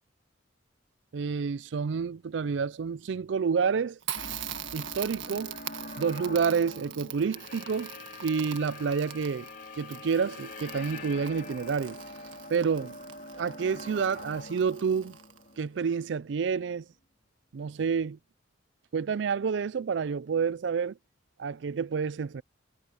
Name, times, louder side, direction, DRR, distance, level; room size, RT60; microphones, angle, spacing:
voice 1, 1.1-4.0 4.7-5.5 6.0-7.9 8.2-9.5 9.8-12.0 12.5-13.0 13.3-15.1 15.6-16.8 17.5-18.2 18.9-21.0 21.4-22.4, right 6 dB, 65° right, 0.4 m, -29 dB
Crackle, 4.0-15.6, right 11 dB, 80° right, 1.6 m, -43 dB
sound 1, 4.1-16.3, left 2 dB, 45° left, 3.3 m, -44 dB
head